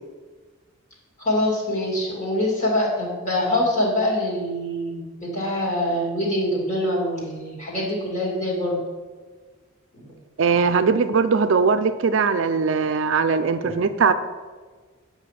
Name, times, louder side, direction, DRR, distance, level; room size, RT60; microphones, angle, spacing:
voice 1, 1.2-8.8 9.9-10.1 13.6-13.9, left 1 dB, 35° left, -4 dB, 2.5 m, -24 dB
voice 2, 10.4-14.1, right 5 dB, 60° right, 10 dB, 0.4 m, -20 dB
8.0 x 5.5 x 5.8 m, 1.4 s
head